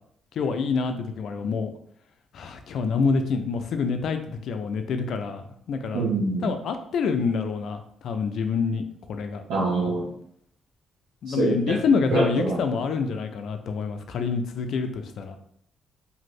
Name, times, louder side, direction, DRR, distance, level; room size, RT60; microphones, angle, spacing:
voice 1, 0.3-1.7 2.3-6.1 6.4-9.4 11.2-15.4, left 5 dB, 70° left, 7 dB, 0.3 m, -27 dB
voice 2, 5.9-6.5 9.5-10.1 11.3-11.8 12.1-12.6, right 2 dB, 85° right, -5 dB, 0.6 m, -25 dB
2.6 x 2.5 x 3.1 m, 0.68 s
cardioid pair, 90°, 0 cm